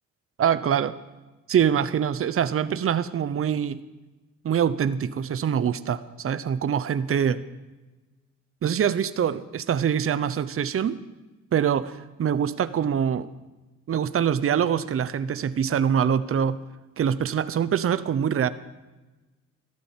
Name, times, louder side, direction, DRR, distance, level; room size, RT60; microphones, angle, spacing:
voice 1, 0.4-0.9 1.5-3.8 4.4-7.4 8.6-11.0 11.5-13.3 13.9-16.6 17.0-18.5, right 8 dB, 45° right, 13 dB, 0.9 m, -24 dB
14.0 x 12.5 x 7.4 m, 1.2 s
cardioid pair, 80°, 31 cm